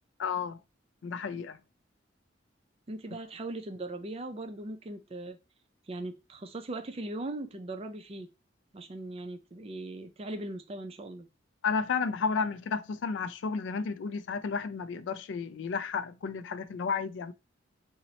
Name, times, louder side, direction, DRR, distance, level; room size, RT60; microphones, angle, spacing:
voice 1, 0.2-0.6 1.0-1.6 11.6-17.3, left 5 dB, 70° left, 0.3 m, -32 dB
voice 2, 2.9-5.4 5.9-8.3 8.7-11.3, right 2 dB, 30° right, 0.4 m, -39 dB
2.8 x 2.1 x 3.9 m
head